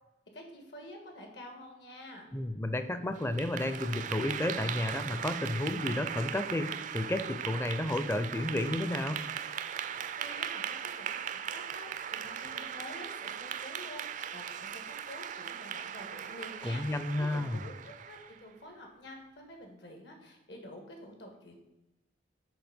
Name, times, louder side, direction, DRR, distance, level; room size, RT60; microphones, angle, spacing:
voice 1, 0.3-2.3 10.2-21.6, left 1 dB, 75° left, 3 dB, 1.7 m, -49 dB
voice 2, 2.3-9.2 16.6-17.6, left 1 dB, 15° left, 10 dB, 0.4 m, -32 dB
Clapping / Applause, 3.2-18.4, right 8 dB, 45° right, 0.4 m, -39 dB
6.2 x 5.4 x 5.1 m, 0.98 s
head